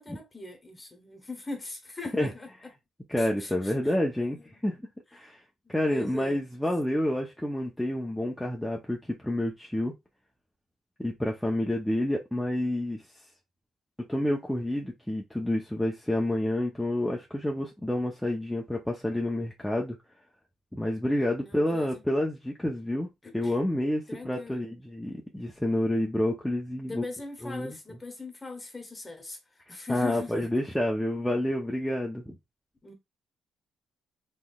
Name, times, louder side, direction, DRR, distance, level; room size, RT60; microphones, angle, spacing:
voice 1, 0.0-2.5 3.2-4.7 5.6-6.5 21.4-22.0 23.2-23.5 24.1-24.6 26.8-30.6 32.8-32.9, left 3 dB, 20° left, 1.1 m, -41 dB
voice 2, 3.1-4.4 4.6-4.8 5.1-5.4 5.7-9.9 11.0-13.0 14.1-20.0 20.7-27.0 27.4-27.8 29.9-32.3, left 1 dB, 5° left, 0.7 m, -29 dB
3.6 x 3.1 x 2.3 m
cardioid pair, 90°, 0 cm